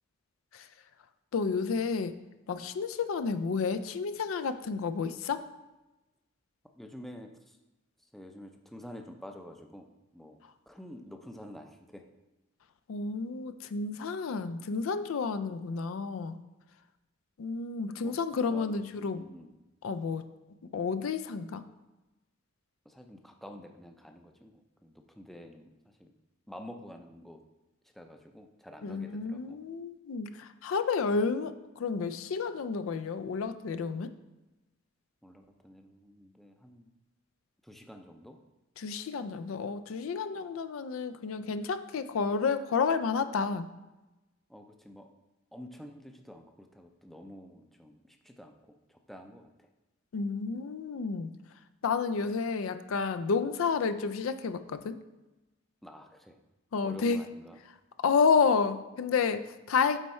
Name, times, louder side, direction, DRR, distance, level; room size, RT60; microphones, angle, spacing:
voice 1, 1.3-2.2 2.5-5.4 12.9-16.4 17.4-19.2 19.8-20.3 20.7-21.6 28.8-34.1 38.8-43.7 50.1-51.3 51.8-55.0 56.7-57.2 58.0-60.0, left 5 dB, 75° left, 10 dB, 0.4 m, -30 dB
voice 2, 6.8-7.6 8.1-9.9 10.1-12.0 18.0-18.1 18.5-19.5 22.9-26.1 26.5-27.4 27.9-29.6 35.2-36.9 37.6-38.4 44.5-45.1 45.5-49.7 55.8-56.4 56.8-57.6, left 1 dB, ahead, 4 dB, 0.5 m, -49 dB
8.1 x 4.3 x 4.2 m, 1.0 s
head